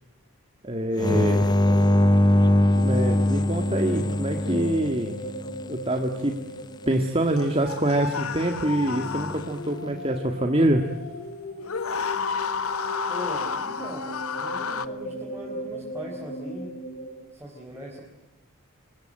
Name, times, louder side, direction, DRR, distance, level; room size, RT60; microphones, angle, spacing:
voice 1, 0.6-1.5 2.7-5.2 5.7-6.4 6.9-10.9, right 1 dB, 25° right, 4 dB, 2.0 m, -25 dB
sound 1, 0.7-7.9 8.8-17.3, left 1 dB, 55° left, 7.5 m, -38 dB
sound 2, 1.0-5.6 8.9-9.4, left 1 dB, 20° left, 1.1 m, -22 dB
sound 3, 7.4-9.8 11.6-14.9, left 5 dB, 90° left, 1.3 m, -31 dB
voice 2, 13.1-16.8 17.3-18.0, equal, 10° right, -2 dB, 4.7 m, -40 dB
27.5 x 23.5 x 9.1 m, 1.0 s
head